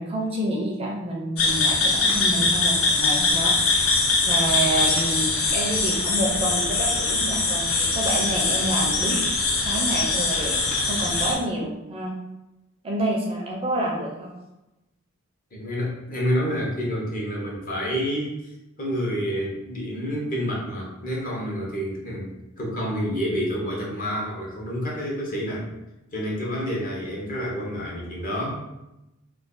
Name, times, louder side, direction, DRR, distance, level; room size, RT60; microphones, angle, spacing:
voice 1, 0.0-9.2 9.6-10.5 10.9-12.1 12.8-14.3, right 1 dB, 25° right, 0 dB, 0.4 m, -28 dB
sound 1, 1.4-11.3, left 3 dB, 70° left, 0.6 m, -22 dB
voice 2, 15.5-25.7 26.1-28.7, equal, 40° left, -3 dB, 0.8 m, -28 dB
2.5 x 2.3 x 3.6 m, 0.94 s
head